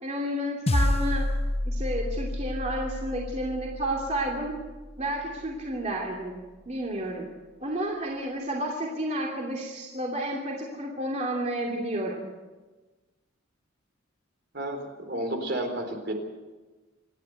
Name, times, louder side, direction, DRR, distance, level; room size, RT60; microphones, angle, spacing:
voice 1, 0.0-1.3 1.6-4.6 5.0-6.4 6.7-7.3 7.6-12.2, right 1 dB, 35° right, -1 dB, 2.8 m, -31 dB
sound 1, 0.7-5.2, left 1 dB, 30° left, 0.8 m, -29 dB
voice 2, 15.1-16.1, right 1 dB, 55° right, 4 dB, 3.9 m, -31 dB
27.0 x 11.0 x 9.3 m, 1.2 s
head